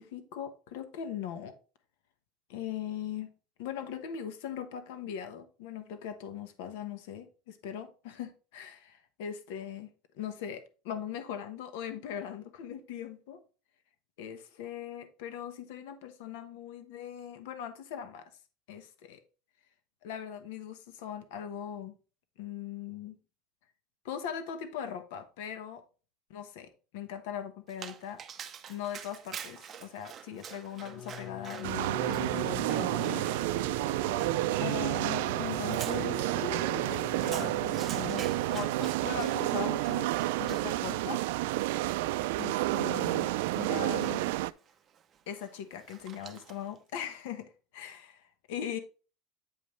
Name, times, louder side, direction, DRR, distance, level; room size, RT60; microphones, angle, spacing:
voice 1, 0.0-1.6 2.5-3.3 3.6-13.4 14.2-18.3 18.7-19.2 20.0-21.9 22.4-23.2 24.0-25.8 26.3-28.2 28.7-33.3 33.6-33.7 34.6-40.1 40.4-41.2 42.4-43.3 43.5-44.3 45.3-48.8, left 9 dB, 70° left, 1.0 m, -40 dB
Dog, 27.7-46.8, right 8 dB, 20° right, 0.6 m, -48 dB
Bowed string instrument, 30.7-39.0, left 7 dB, 25° left, 0.9 m, -44 dB
sound 1, 31.6-44.5, right 17 dB, 75° right, 0.3 m, -30 dB
8.5 x 5.3 x 3.1 m
cardioid pair, 175°, 0 cm